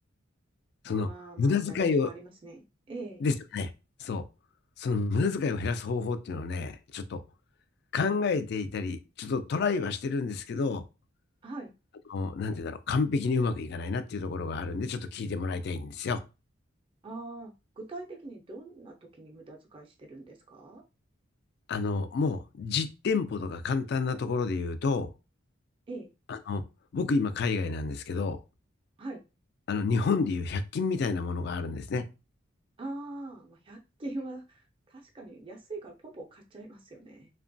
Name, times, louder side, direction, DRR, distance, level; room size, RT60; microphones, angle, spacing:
voice 1, 0.9-3.2 11.4-11.7 17.0-20.8 25.9-26.1 29.0-29.2 32.8-37.3, right 2 dB, 25° right, 2 dB, 0.4 m, -42 dB
voice 2, 1.4-2.1 3.2-3.7 4.0-4.2 4.8-7.2 7.9-10.8 12.1-16.2 21.7-25.1 26.3-26.6 26.9-28.4 29.7-32.1, left 4 dB, 55° left, 11 dB, 0.3 m, -29 dB
2.8 x 2.2 x 2.6 m, 0.29 s
head